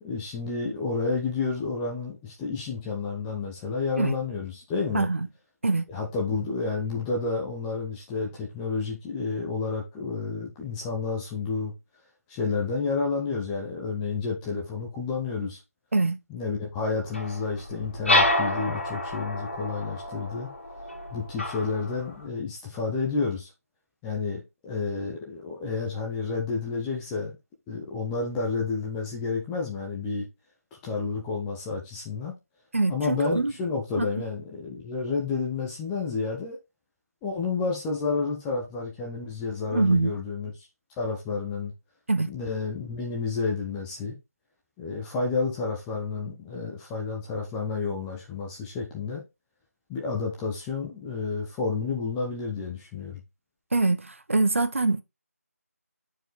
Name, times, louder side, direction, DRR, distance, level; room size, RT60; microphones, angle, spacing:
voice 1, 0.0-5.1 5.9-11.7 12.3-15.6 16.3-20.5 21.1-23.5 24.0-27.3 27.7-30.3 30.7-32.4 32.9-36.6 37.2-40.5 41.0-41.7 42.3-44.2 44.8-49.2 49.9-53.2, left 4 dB, 5° left, 0.4 m, -30 dB
voice 2, 4.9-5.3 5.6-5.8 15.9-16.2 32.7-33.5 34.0-34.1 39.7-40.1 42.1-42.3 53.7-55.0, right 3 dB, 55° right, 0.8 m, -24 dB
sound 1, 17.1-22.2, left 2 dB, 50° left, 2.3 m, -28 dB
8.8 x 4.6 x 3.3 m
figure-of-eight pair, 160°, 8 cm